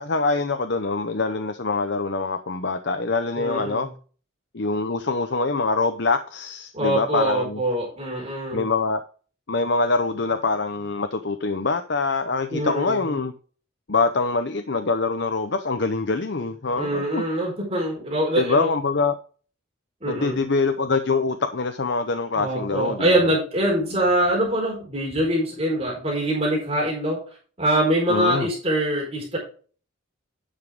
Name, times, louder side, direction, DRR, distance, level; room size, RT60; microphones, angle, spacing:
voice 1, 0.0-3.9 4.5-7.6 8.5-9.0 9.5-13.3 13.9-17.2 18.4-19.2 20.1-23.3 28.1-28.5, left 3 dB, 55° left, 0.7 m, -24 dB
voice 2, 3.4-3.9 6.7-8.6 12.5-13.1 16.7-18.7 20.0-20.4 22.4-27.2 27.6-29.4, right 1 dB, 30° right, 4.4 m, -24 dB
10.0 x 7.1 x 3.6 m
head